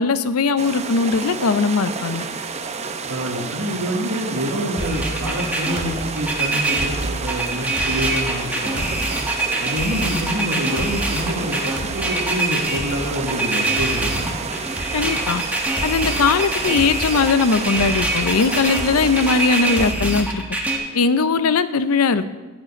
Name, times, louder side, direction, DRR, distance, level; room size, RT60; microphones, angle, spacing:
voice 1, 0.0-2.3 14.9-15.4 15.8-20.4 20.9-22.3, left 4 dB, 70° left, 13 dB, 0.6 m, -19 dB
sound 1, 0.6-19.9, right 5 dB, 30° right, 0.7 m, -30 dB
voice 2, 3.1-8.9 9.6-14.4, equal, 90° right, 0 dB, 1.7 m, -27 dB
sound 2, 4.8-20.8, right 2 dB, 5° right, 1.4 m, -24 dB
13.0 x 5.1 x 8.6 m, 1.3 s
head